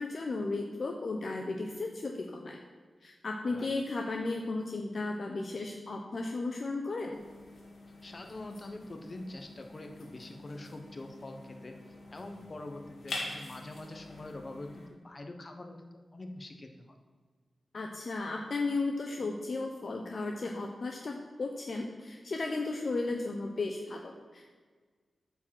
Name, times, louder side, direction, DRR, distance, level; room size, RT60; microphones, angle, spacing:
voice 1, 0.0-2.6 3.0-7.2 17.7-24.4, left 3 dB, 60° left, 2 dB, 0.9 m, -35 dB
sound 1, 7.1-14.9, left 2 dB, 80° left, 2.1 m, -46 dB
voice 2, 8.0-11.8 12.1-16.9, left 2 dB, 45° left, 4 dB, 1.3 m, -44 dB
9.2 x 5.0 x 7.7 m, 1.5 s
cardioid pair, 65°, 0 cm